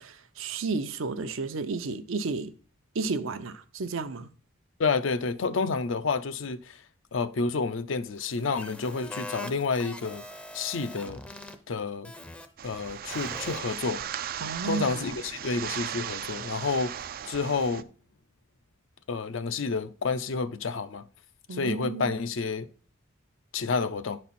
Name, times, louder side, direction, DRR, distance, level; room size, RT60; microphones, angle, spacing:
voice 1, 0.0-2.5 2.9-4.3 14.4-15.1 21.5-22.2, right 4 dB, 75° right, 0.7 m, -32 dB
voice 2, 4.8-6.8 7.1-10.2 10.5-11.2 11.7-12.1 12.6-14.0 14.6-17.9 19.1-21.0 21.5-22.7 23.5-24.2, left 4 dB, 65° left, 0.5 m, -29 dB
sound 1, 8.2-11.5 12.0-12.4 13.1-13.7, left 1 dB, 5° left, 0.5 m, -42 dB
sound 2, 12.6-17.8, right 9 dB, 45° right, 0.3 m, -37 dB
10.0 x 4.3 x 4.2 m
head